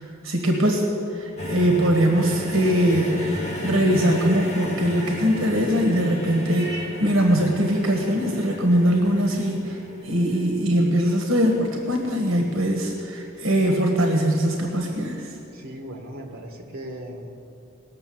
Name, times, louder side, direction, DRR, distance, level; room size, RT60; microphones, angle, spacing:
voice 1, 0.0-3.2 3.6-9.8 10.0-15.2, equal, 70° right, 2 dB, 1.3 m, -21 dB
sound 1, 1.4-11.5 12.5-12.6, left 1 dB, 35° left, 2.0 m, -33 dB
voice 2, 15.5-17.4, right 1 dB, 50° right, 2 dB, 1.7 m, -37 dB
18.5 x 6.4 x 7.8 m, 2.7 s
head